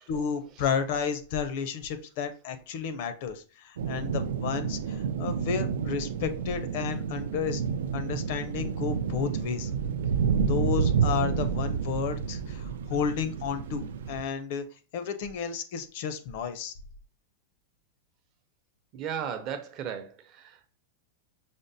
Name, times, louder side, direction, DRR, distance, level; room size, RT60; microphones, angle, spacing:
voice 1, 0.1-7.6 7.9-9.7 10.5-14.7 14.9-16.7, left 7 dB, 55° left, 0.5 m, -32 dB
sound 1, 3.8-14.2, right 7 dB, 90° right, 0.3 m, -30 dB
voice 2, 18.9-20.8, right 8 dB, 40° right, 0.6 m, -36 dB
5.0 x 2.0 x 2.7 m
supercardioid pair, 150°, 0 cm